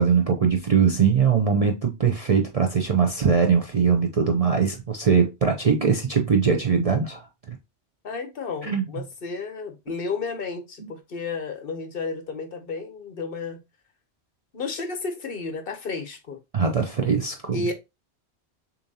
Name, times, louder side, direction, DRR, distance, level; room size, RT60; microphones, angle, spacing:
voice 1, 0.0-7.3 8.6-8.8 16.5-17.7, right 6 dB, 45° right, 0.5 m, -21 dB
voice 2, 8.0-13.6 14.5-16.4 17.5-17.7, left 4 dB, 55° left, 1.0 m, -32 dB
6.7 x 2.6 x 2.7 m
omnidirectional pair, 1.1 m